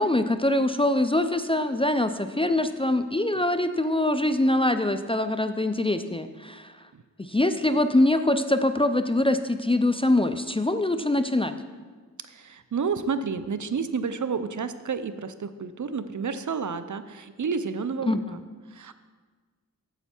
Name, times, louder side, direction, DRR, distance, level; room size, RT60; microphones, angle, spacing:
voice 1, 0.0-6.7 7.2-11.6 18.0-18.2, left 1 dB, 15° left, 9 dB, 0.4 m, -23 dB
voice 2, 12.2-18.4 18.7-18.9, right 5 dB, 55° right, 12 dB, 0.6 m, -30 dB
9.1 x 7.9 x 4.4 m, 1.4 s
cardioid pair, 50°, 36 cm